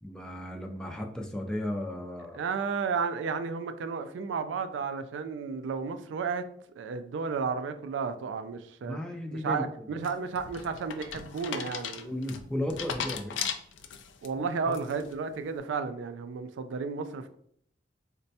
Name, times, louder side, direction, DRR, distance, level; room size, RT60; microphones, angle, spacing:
voice 1, 0.0-2.4 8.8-9.9 12.0-13.3 14.4-14.5 14.9-15.0, left 1 dB, 5° left, 0.3 m, -35 dB
voice 2, 2.3-6.4 6.8-9.0 9.3-12.2 14.2-17.3, right 5 dB, 80° right, 0.3 m, -33 dB
sound 1, 10.0-14.3 14.7-15.1, left 7 dB, 90° left, 0.4 m, -37 dB
4.1 x 2.2 x 2.6 m
head